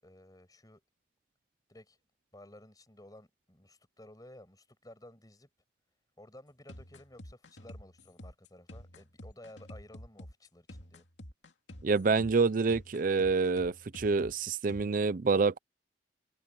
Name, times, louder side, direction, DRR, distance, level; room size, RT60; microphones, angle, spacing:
voice 1, 0.0-0.8 1.7-2.0 2.3-5.5 6.2-11.1, left 1 dB, 20° left, 6.0 m, -54 dB
sound 1, 6.7-14.9, left 1 dB, 85° left, 2.7 m, -49 dB
voice 2, 11.8-15.6, right 4 dB, 50° right, 0.5 m, -27 dB
head